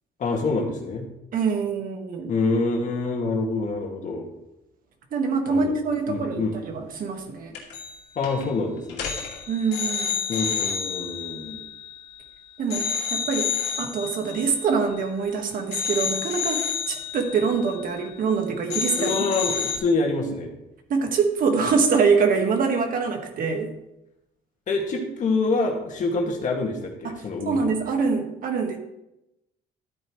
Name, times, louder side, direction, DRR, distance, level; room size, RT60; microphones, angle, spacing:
voice 1, 0.2-1.1 2.3-4.3 5.5-5.7 6.1-6.6 8.2-9.1 10.3-11.6 19.0-20.5 24.7-27.7, left 3 dB, 50° left, 1 dB, 2.1 m, -26 dB
voice 2, 1.3-2.3 5.1-7.5 9.5-10.2 12.6-19.2 20.9-23.7 27.0-28.8, right 5 dB, 55° right, 4 dB, 1.7 m, -25 dB
sound 1, 7.5-8.0 8.2-8.5 8.9-12.3 12.7-15.3 15.7-18.4 18.7-19.8, left 7 dB, 90° left, 2.4 m, -30 dB
12.5 x 8.9 x 3.2 m, 0.90 s
cardioid pair, 110°, 17 cm